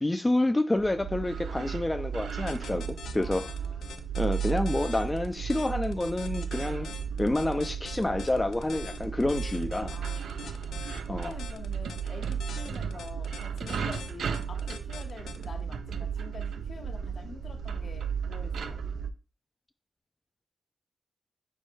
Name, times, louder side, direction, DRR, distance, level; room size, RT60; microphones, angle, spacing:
voice 1, 0.0-3.5 4.2-6.9 7.2-9.9 11.1-11.4, left 1 dB, 20° left, 0.3 m, -28 dB
sound 1, 0.8-19.1, right 7 dB, 90° right, 0.3 m, -34 dB
sound 2, 2.3-15.4, left 6 dB, 90° left, 0.4 m, -44 dB
voice 2, 3.2-4.0 6.6-7.0 9.9-10.6 11.1-18.8, left 4 dB, 60° left, 0.8 m, -46 dB
4.6 x 2.2 x 4.4 m
cardioid pair, 70°, 0 cm